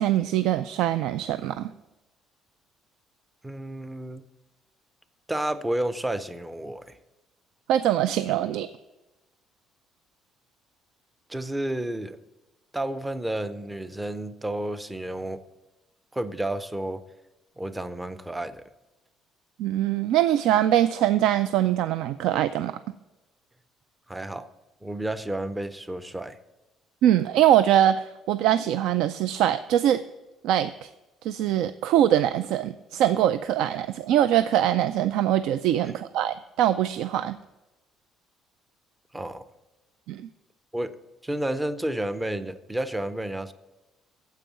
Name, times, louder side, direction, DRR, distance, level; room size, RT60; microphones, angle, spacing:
voice 1, 0.0-1.7 7.7-8.7 19.6-22.8 27.0-30.0 30.4-30.9 31.2-37.4 40.1-40.2, right 11 dB, 75° right, 13 dB, 0.3 m, -23 dB
voice 2, 3.4-4.2 5.3-7.0 11.3-12.2 12.7-15.4 16.1-17.0 17.6-18.6 24.1-24.5 24.8-26.4 35.8-35.9 39.1-39.5 40.7-41.0 41.2-43.5, right 1 dB, 10° right, 13 dB, 0.5 m, -31 dB
9.1 x 7.7 x 7.1 m, 1.0 s
cardioid pair, 165°, 0 cm